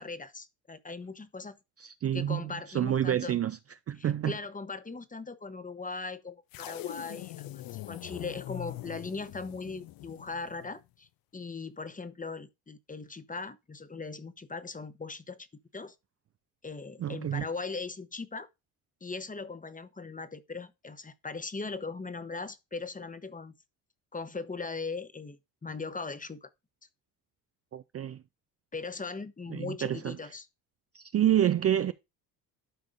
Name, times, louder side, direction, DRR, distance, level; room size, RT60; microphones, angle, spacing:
voice 1, 0.0-1.6 2.1-3.4 4.0-15.5 15.7-15.9 16.6-18.5 19.0-23.5 24.1-26.5 28.7-30.5, left 4 dB, 15° left, 0.9 m, -39 dB
voice 2, 1.8-3.6 3.9-4.4 17.0-17.5 27.7-28.2 29.5-30.3 30.9-31.9, right 10 dB, 30° right, 0.4 m, -28 dB
sound 1, 6.5-10.8, left 16 dB, 50° left, 0.5 m, -42 dB
12.0 x 4.8 x 2.5 m
hypercardioid pair, 55°, 48 cm